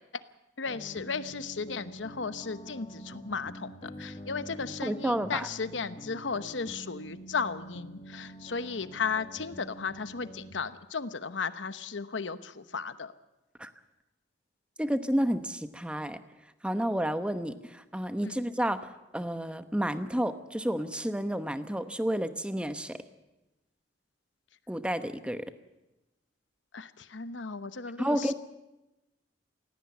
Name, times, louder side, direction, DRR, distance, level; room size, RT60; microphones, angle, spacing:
voice 1, 0.6-13.1 18.2-18.4 26.7-28.3, left 5 dB, 80° left, 13 dB, 0.9 m, -35 dB
sound 1, 0.7-10.5, right 1 dB, 30° left, 1.4 m, -46 dB
voice 2, 4.8-5.5 13.6-13.7 14.8-16.2 16.6-23.0 24.7-25.4 28.0-28.3, equal, 5° right, 10 dB, 0.9 m, -31 dB
17.5 x 16.5 x 9.6 m, 0.99 s
head